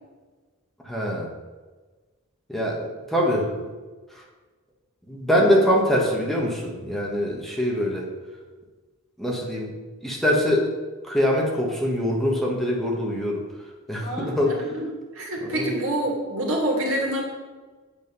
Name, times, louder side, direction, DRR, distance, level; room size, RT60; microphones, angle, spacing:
voice 1, 0.8-1.3 2.5-3.7 4.1-4.2 5.1-8.1 9.2-9.7 10.0-10.7 11.0-13.5 13.9-14.6 15.4-15.7, equal, ahead, -2 dB, 1.5 m, -23 dB
voice 2, 14.0-14.9 15.1-17.2, right 1 dB, 75° right, -1 dB, 2.6 m, -27 dB
8.5 x 7.6 x 5.4 m, 1.3 s
head